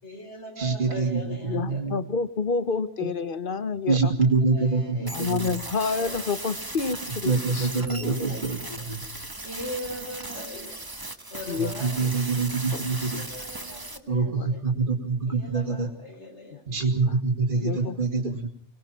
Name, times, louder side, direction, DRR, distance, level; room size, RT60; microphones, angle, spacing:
voice 1, 0.0-1.8 4.5-5.2 6.0-6.2 7.8-8.5 8.8-9.0 9.4-10.8 11.3-12.0 13.2-14.6 15.3-16.6 17.5-17.9, equal, 70° left, 4 dB, 4.9 m, -40 dB
voice 2, 0.6-2.0 3.0-3.1 3.9-5.5 7.2-9.0 11.5-13.2 14.1-15.9 16.7-18.5, right 4 dB, 45° right, 3 dB, 2.7 m, -25 dB
voice 3, 1.5-4.1 5.1-7.7 8.0-8.2 11.5-11.7 12.7-13.1 14.4-14.5 17.5-18.0, left 5 dB, 50° left, 13 dB, 1.2 m, -29 dB
sound 1, 5.1-14.0, right 2 dB, 20° right, 1.3 m, -37 dB
24.5 x 19.0 x 5.8 m, 0.62 s
omnidirectional pair, 1.2 m